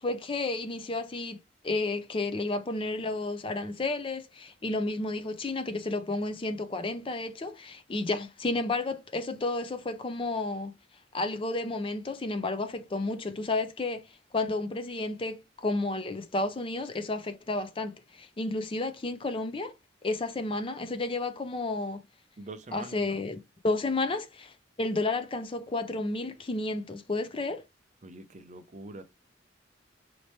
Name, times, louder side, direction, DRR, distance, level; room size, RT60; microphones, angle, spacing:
voice 1, 0.0-1.4 1.6-10.7 11.1-14.0 14.3-19.7 20.0-22.0 22.7-27.6, left 2 dB, 30° left, 0.4 m, -31 dB
voice 2, 22.4-23.2 28.0-29.0, right 2 dB, 40° right, 0.6 m, -44 dB
4.3 x 2.9 x 3.1 m
head